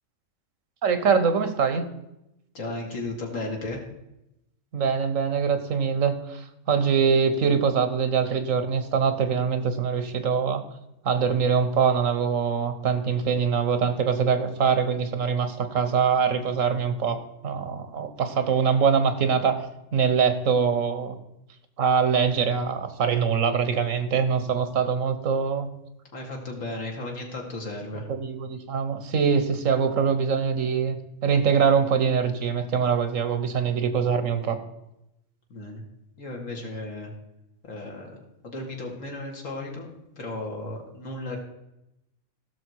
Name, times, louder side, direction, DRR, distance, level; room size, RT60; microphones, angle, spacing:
voice 1, 0.8-1.8 4.7-10.6 11.0-17.2 17.4-19.6 19.9-21.2 21.8-25.7 28.1-31.0 31.2-34.6, right 6 dB, 85° right, 10 dB, 1.4 m, -23 dB
voice 2, 2.5-3.8 26.1-28.1 35.5-35.8 36.2-37.1 37.6-39.9 40.2-41.4, left 2 dB, 85° left, 0 dB, 2.4 m, -35 dB
15.5 x 6.4 x 4.7 m, 0.88 s
omnidirectional pair, 1.3 m